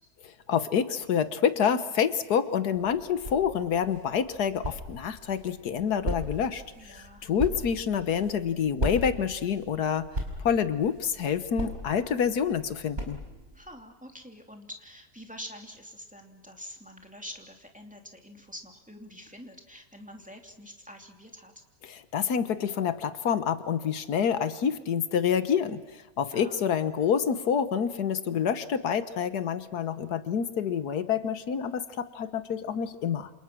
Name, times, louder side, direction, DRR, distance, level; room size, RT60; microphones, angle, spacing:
voice 1, 0.5-10.1 10.4-13.2 21.8-33.3, left 7 dB, 80° left, 11 dB, 1.7 m, -27 dB
sound 1, 2.7-13.6, equal, 45° right, 5.6 m, -38 dB
voice 2, 6.8-7.3 13.5-21.6 26.3-26.7, equal, 5° right, 3 dB, 2.7 m, -46 dB
28.5 x 27.5 x 6.2 m, 1.1 s
omnidirectional pair, 1.7 m